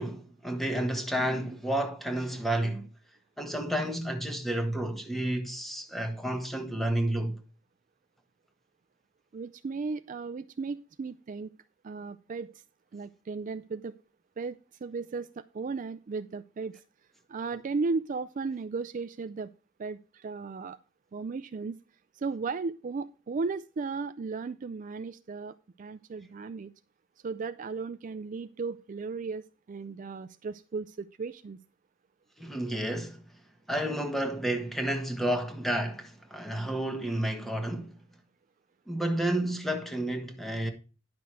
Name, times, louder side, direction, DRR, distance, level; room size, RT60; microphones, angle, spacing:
voice 1, 0.0-2.9 3.4-7.4 32.4-33.2 33.7-38.0 38.9-40.7, right 1 dB, ahead, 1.4 m, -31 dB
voice 2, 9.3-11.5 11.8-12.5 12.9-13.9 14.4-16.8 17.3-19.5 19.8-20.8 21.1-21.8 22.1-26.7 27.2-31.6, right 4 dB, 40° right, 0.4 m, -35 dB
10.5 x 6.0 x 4.7 m
head